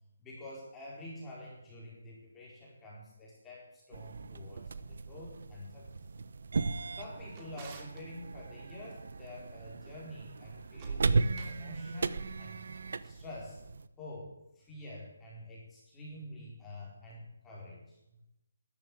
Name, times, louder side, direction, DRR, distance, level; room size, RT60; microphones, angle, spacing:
voice 1, 0.2-5.9 6.9-12.6 13.0-13.6 14.0-18.2, left 1 dB, 10° left, -5 dB, 4.6 m, -48 dB
sound 1, 3.9-13.9, right 4 dB, 60° right, 1.0 m, -36 dB
Drawer open or close, 6.9-8.1 10.6-11.7, right 5 dB, 25° right, 2.5 m, -54 dB
14.0 x 12.0 x 8.6 m, 0.87 s
hypercardioid pair, 160°, 0 cm